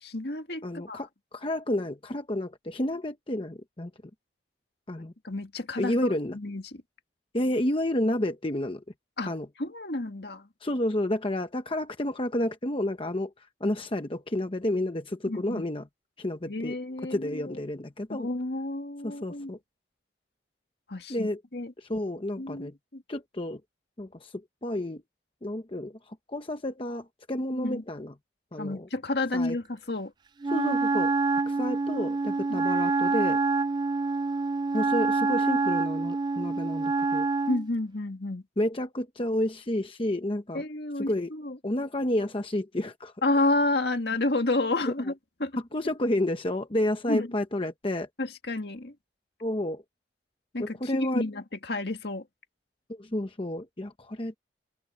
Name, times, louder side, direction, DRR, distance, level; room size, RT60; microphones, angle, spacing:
voice 1, 0.0-1.0 5.2-6.8 9.2-9.3 9.6-10.5 15.3-15.6 16.5-17.5 18.1-19.5 20.9-21.7 22.4-23.0 27.5-27.8 28.6-30.1 32.5-32.7 37.5-38.4 40.5-41.6 43.2-45.5 47.1-47.3 48.2-48.9 50.5-52.3, left 2 dB, 60° left, 2.0 m, -30 dB
voice 2, 0.6-3.9 4.9-5.1 5.8-6.4 7.3-8.8 9.3-9.5 10.6-15.9 16.2-16.8 17.1-18.3 19.0-19.6 21.1-21.4 21.8-22.7 23.1-23.6 24.0-24.3 24.6-25.0 25.4-25.9 26.3-28.1 28.5-28.9 29.3-29.6 30.5-31.1 31.5-33.4 34.7-37.3 38.6-40.6 41.0-41.3 41.6-43.1 45.7-48.1 49.4-49.8 50.6-51.2 53.0-54.3, left 1 dB, 30° left, 0.9 m, -30 dB
Wind instrument woodwind instrument, 30.4-37.7, right 3 dB, 25° right, 0.3 m, -26 dB
open air
head